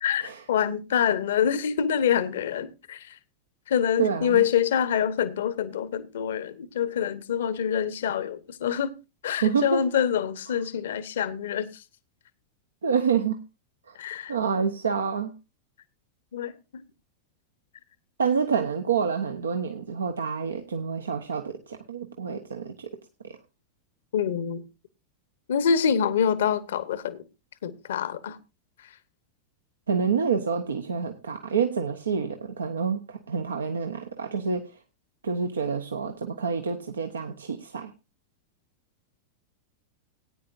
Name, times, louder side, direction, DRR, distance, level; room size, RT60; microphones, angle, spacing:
voice 1, 0.0-3.2 3.7-8.9 9.2-11.8 13.9-14.3 16.3-16.8 24.1-24.6 25.5-27.2 27.6-28.4, left 8 dB, 60° left, 1.0 m, -26 dB
voice 2, 4.0-4.4 9.4-9.9 12.8-13.4 13.9-14.0 14.3-15.3 18.2-23.4 29.9-34.8 35.2-37.9, right 6 dB, 70° right, 0.9 m, -28 dB
18.5 x 9.6 x 2.6 m
figure-of-eight pair, 90°, 0 cm